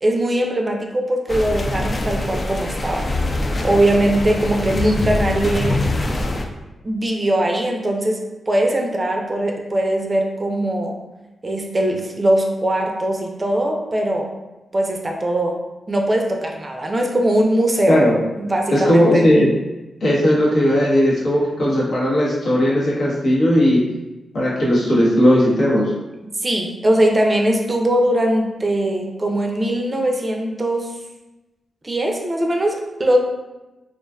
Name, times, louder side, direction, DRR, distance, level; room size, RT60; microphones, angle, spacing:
voice 1, 0.0-3.1 3.6-5.8 6.8-11.0 11.4-14.3 14.7-15.6 15.9-18.0 18.3-19.2 26.4-30.9 31.8-33.2, right 1 dB, 35° right, 2 dB, 0.4 m, -20 dB
sound 1, 1.3-6.5, left 2 dB, 45° left, 0.3 m, -23 dB
voice 2, 18.7-19.5 20.0-23.8 24.3-25.9, equal, 70° left, -6 dB, 0.8 m, -16 dB
2.5 x 2.2 x 2.2 m, 1.1 s
supercardioid pair, 45°, 0 cm